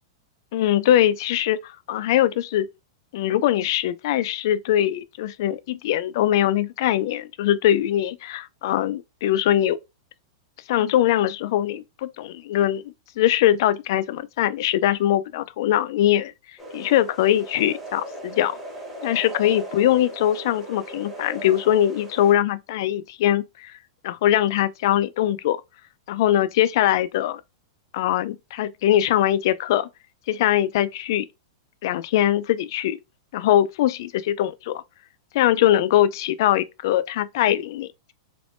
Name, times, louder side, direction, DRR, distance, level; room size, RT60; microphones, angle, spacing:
voice 1, 0.5-2.7 3.1-9.8 10.7-16.3 16.7-18.6 19.0-23.7 24.0-25.6 26.1-27.4 27.9-29.9 30.3-31.3 31.8-33.0 33.3-34.8 35.3-38.1, left 12 dB, 50° left, 0.3 m, -22 dB
sound 1, 16.6-22.3, equal, 5° right, 1.1 m, -38 dB
3.4 x 2.9 x 2.5 m
supercardioid pair, 165°, 3 cm